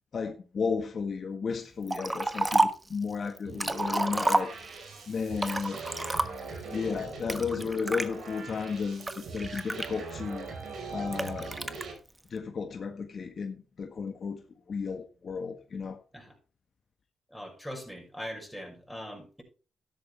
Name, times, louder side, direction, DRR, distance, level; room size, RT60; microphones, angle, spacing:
voice 1, 0.1-4.5 5.1-5.8 6.7-10.5 10.9-11.5 12.3-14.4 14.7-16.0, left 5 dB, 55° left, 1.6 m, -33 dB
Liquid, 1.9-2.9 3.4-4.9 5.4-6.6 7.3-8.1 8.7-10.3 11.1-11.8, right 2 dB, 20° right, 1.3 m, -29 dB
sound 1, 3.4-11.9, right 4 dB, 75° right, 5.1 m, -41 dB
voice 2, 17.3-19.4, equal, ahead, 6.2 m, -41 dB
13.0 x 10.5 x 3.5 m
cardioid pair, 65°, 0 cm